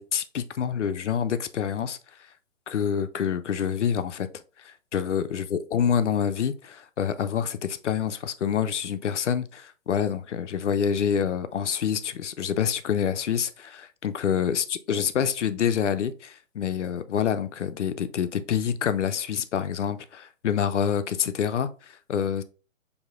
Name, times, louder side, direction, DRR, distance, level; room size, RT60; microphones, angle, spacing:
voice 1, 0.0-2.0 2.7-4.3 4.6-22.4, left 8 dB, 65° left, 0.5 m, -27 dB
6.3 x 2.7 x 2.4 m
figure-of-eight pair, 130°, 40 cm